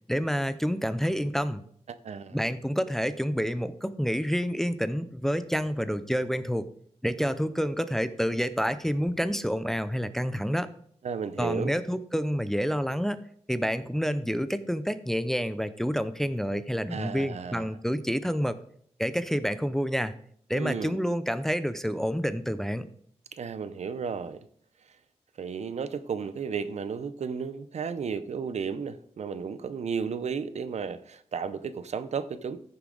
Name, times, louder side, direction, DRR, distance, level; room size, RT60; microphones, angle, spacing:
voice 1, 0.1-1.6 2.3-6.6 7.0-10.7 11.4-13.2 13.5-18.6 19.0-20.1 20.5-22.9, equal, 5° left, 0.5 m, -28 dB
voice 2, 1.9-2.4 11.0-11.7 16.9-17.7 20.5-21.0 23.3-24.5 25.4-32.6, right 6 dB, 70° right, 0.7 m, -33 dB
14.0 x 7.0 x 3.9 m
wide cardioid pair, 120°, 12 cm